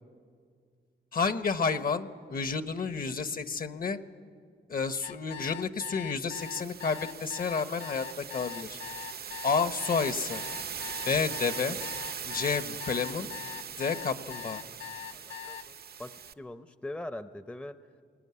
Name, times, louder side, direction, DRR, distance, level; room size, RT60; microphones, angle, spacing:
voice 1, 1.1-4.0 4.7-8.8 9.4-10.4 11.1-11.8 12.2-13.3 13.8-14.6, left 5 dB, 50° left, 11 dB, 1.0 m, -30 dB
sound 1, 5.0-15.7, left 8 dB, 70° left, 0.7 m, -42 dB
sound 2, 6.3-16.3, right 7 dB, 55° right, 0.6 m, -40 dB
voice 2, 15.1-17.8, left 1 dB, 5° left, 11 dB, 0.6 m, -42 dB
21.5 x 19.0 x 9.6 m, 2.1 s
wide cardioid pair, 105°, 19 cm